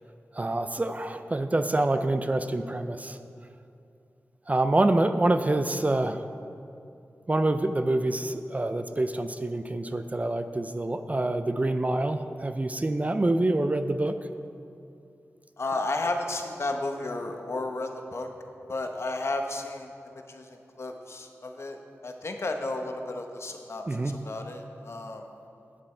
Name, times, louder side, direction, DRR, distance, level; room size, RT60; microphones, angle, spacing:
voice 1, 0.3-3.2 4.5-6.2 7.3-14.2 23.9-24.2, right 2 dB, 30° right, 9 dB, 0.4 m, -26 dB
voice 2, 15.6-18.3 18.7-23.8 24.2-25.2, left 2 dB, 60° left, 4 dB, 0.8 m, -33 dB
10.5 x 7.8 x 4.4 m, 2.6 s
wide cardioid pair, 75°, 5 cm